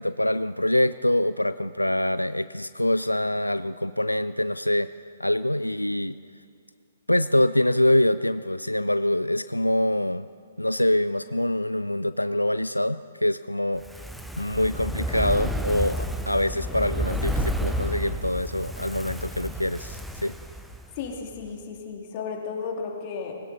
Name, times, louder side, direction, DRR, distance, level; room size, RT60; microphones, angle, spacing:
voice 1, 0.0-4.9 5.2-6.2 7.1-10.3 10.6-13.8 14.4-20.3, left 1 dB, 90° left, 14 dB, 0.3 m, -25 dB
Fire, 13.8-21.1 21.4-21.5, equal, ahead, 0.7 m, -31 dB
voice 2, 21.0-23.3, left 5 dB, 35° left, 1 dB, 2.5 m, -34 dB
20.0 x 17.5 x 4.1 m, 2.2 s
figure-of-eight pair, 125°, 0 cm